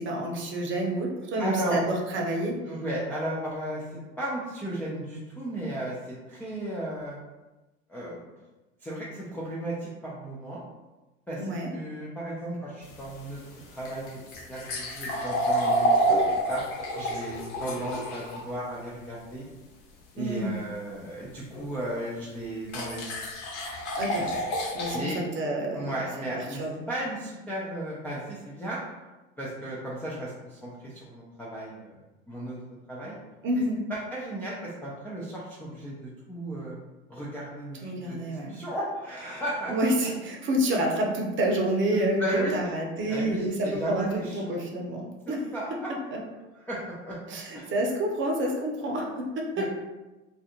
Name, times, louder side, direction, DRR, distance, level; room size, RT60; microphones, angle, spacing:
voice 1, 0.0-2.6 11.4-11.7 20.2-20.6 23.9-24.3 24.7-25.9 26.3-26.8 33.4-33.9 37.8-38.6 39.7-45.5 47.3-49.6, right 1 dB, 30° right, -1 dB, 0.7 m, -28 dB
voice 2, 1.4-1.8 2.7-3.8 4.2-7.2 7.9-8.2 8.8-10.6 11.3-13.4 13.7-14.1 14.5-16.2 16.5-16.6 17.0-19.5 20.1-23.1 24.2-24.3 24.9-25.2 25.7-26.6 26.9-28.8 29.4-32.0 32.3-32.6 32.9-33.2 33.9-36.8 37.1-39.7 41.9-42.6 43.1-44.6 45.3-45.9 46.6-47.2 47.5-47.7 48.8-49.0 49.6-49.7, right 1 dB, 5° left, -8 dB, 0.3 m, -35 dB
sound 1, 12.8-18.4 21.5-21.6 22.7-25.0, right 1 dB, 65° left, 0.8 m, -28 dB
2.5 x 2.4 x 2.7 m, 1.1 s
hypercardioid pair, 85°, 39 cm